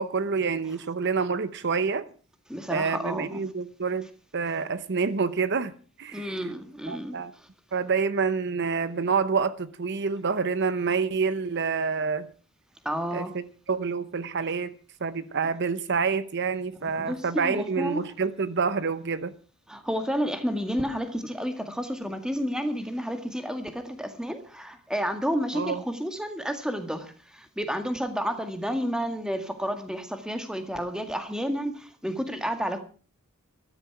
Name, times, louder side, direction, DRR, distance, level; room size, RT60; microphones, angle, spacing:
voice 1, 0.0-2.1 2.7-4.1 4.3-5.7 6.0-6.4 6.9-7.3 7.7-12.3 13.1-14.7 15.0-19.3 25.5-25.8, right 5 dB, 55° right, 0.8 m, -27 dB
voice 2, 2.5-3.4 6.1-7.2 12.8-13.3 16.8-18.1 19.7-32.8, equal, 5° right, 1.9 m, -31 dB
14.0 x 13.5 x 5.9 m
head